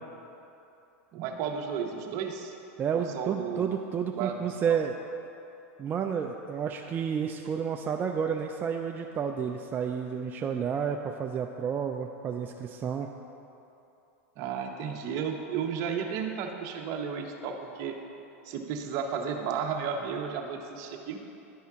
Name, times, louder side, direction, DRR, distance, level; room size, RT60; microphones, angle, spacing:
voice 1, 1.1-2.5 2.9-3.7 4.1-4.8 14.4-18.0 18.4-21.2, right 7 dB, 50° right, 3 dB, 0.8 m, -33 dB
voice 2, 2.8-5.0 5.8-13.1, right 7 dB, 25° right, 3 dB, 0.3 m, -31 dB
11.0 x 4.3 x 3.6 m, 2.9 s
hypercardioid pair, 110°, 8 cm